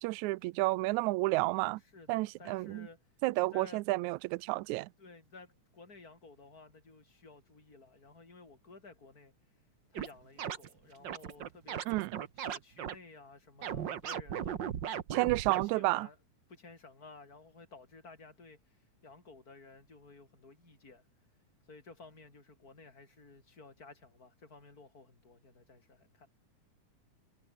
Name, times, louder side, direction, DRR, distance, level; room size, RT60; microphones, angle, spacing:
voice 1, 0.0-1.8 2.1-2.9 3.2-4.9 11.9-12.1 15.1-16.1, right 21 dB, 80° right, 1.9 m, -31 dB
voice 2, 1.9-3.0 3.3-3.8 5.0-9.3 9.9-12.0 12.4-14.6 15.5-16.2 16.5-21.1 21.7-26.3, left 3 dB, 25° left, 5.9 m, -54 dB
sound 1, 9.9-10.1 10.4-10.7 11.0-12.9 13.6-15.6, right 9 dB, 55° right, 1.4 m, -37 dB
omnidirectional pair, 3.5 m